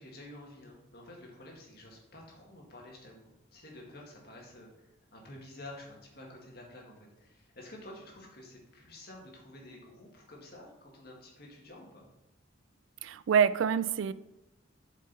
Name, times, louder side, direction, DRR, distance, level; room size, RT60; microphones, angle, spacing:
voice 1, 0.0-12.1, left 1 dB, 50° left, -1 dB, 1.8 m, -50 dB
voice 2, 13.0-14.1, right 7 dB, 80° right, 15 dB, 0.3 m, -26 dB
7.8 x 5.1 x 4.0 m, 0.90 s
head